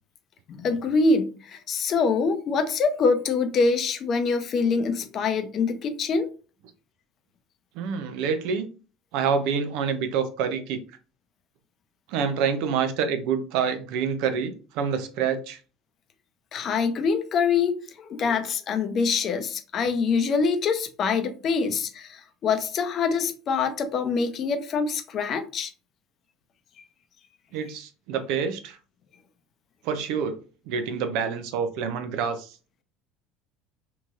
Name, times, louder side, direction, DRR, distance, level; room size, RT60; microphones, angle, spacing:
voice 1, 0.6-6.3 16.5-25.7, left 4 dB, 50° left, 0.5 m, -25 dB
voice 2, 7.8-8.7 9.1-10.8 12.1-15.6 27.5-28.8 29.8-30.4 30.7-32.5, right 6 dB, 70° right, 0.5 m, -27 dB
2.9 x 2.8 x 2.4 m
hypercardioid pair, 75°, 0 cm